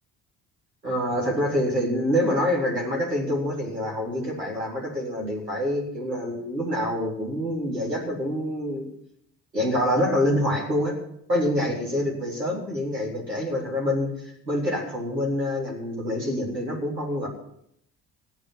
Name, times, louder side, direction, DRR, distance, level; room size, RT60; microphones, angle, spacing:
voice 1, 0.8-8.9 9.5-11.0 11.3-17.3, left 1 dB, 90° right, -3 dB, 4.0 m, -26 dB
16.0 x 9.3 x 8.5 m, 0.74 s
figure-of-eight pair, 50°, 48 cm